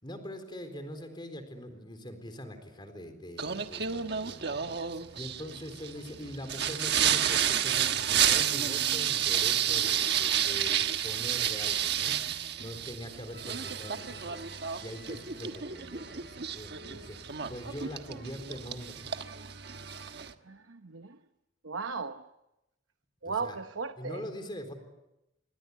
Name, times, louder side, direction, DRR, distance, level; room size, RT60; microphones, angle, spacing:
voice 1, 0.0-4.6 5.2-12.2 12.6-19.1 23.2-23.6 24.0-24.7, equal, 25° left, 4.1 m, -43 dB
Singing, 3.4-20.3, right 9 dB, 55° right, 1.4 m, -31 dB
voice 2, 20.4-21.2 21.6-22.3 23.2-24.2, right 5 dB, 85° right, 0.9 m, -36 dB
28.0 x 23.5 x 8.5 m
head